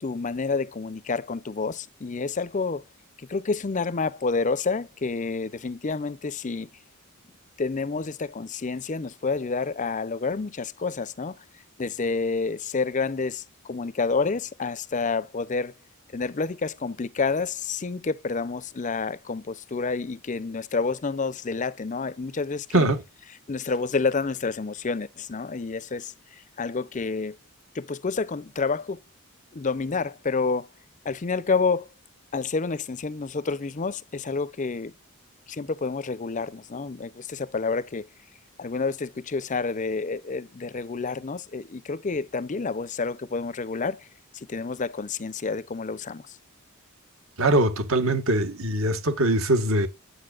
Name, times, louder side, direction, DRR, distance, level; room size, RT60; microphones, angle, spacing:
voice 1, 0.0-2.8 3.3-6.7 7.6-11.4 11.8-15.7 16.1-22.9 23.5-26.1 26.6-27.4 27.7-29.0 29.5-30.7 31.0-31.9 32.3-34.9 35.5-38.1 38.6-44.1 44.3-46.3, left 4 dB, 35° left, 0.5 m, -29 dB
voice 2, 47.4-49.9, right 1 dB, 70° right, 1.6 m, -22 dB
9.6 x 8.2 x 2.4 m
head